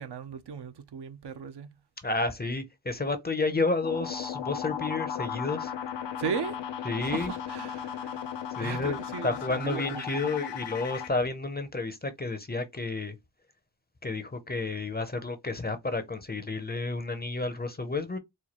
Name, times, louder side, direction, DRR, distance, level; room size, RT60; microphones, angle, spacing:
voice 1, 0.0-1.7 6.2-6.6 7.0-8.2 8.6-10.3, right 6 dB, 70° right, 0.6 m, -37 dB
voice 2, 2.0-5.7 6.8-7.3 8.6-13.1 14.0-18.2, left 3 dB, 25° left, 0.6 m, -31 dB
sound 1, 3.8-11.1, left 8 dB, 80° left, 0.5 m, -36 dB
4.3 x 2.2 x 2.9 m
wide cardioid pair, 80°, 43 cm